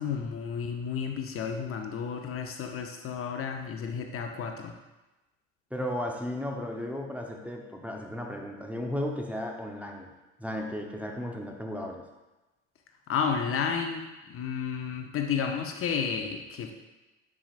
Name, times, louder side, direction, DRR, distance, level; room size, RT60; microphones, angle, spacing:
voice 1, 0.0-4.7 13.1-16.7, left 6 dB, 35° left, 4 dB, 0.8 m, -32 dB
voice 2, 5.7-10.1 10.4-12.0, left 1 dB, 5° right, 0 dB, 0.8 m, -35 dB
9.9 x 5.0 x 2.5 m, 1.1 s
hypercardioid pair, 70°, 38 cm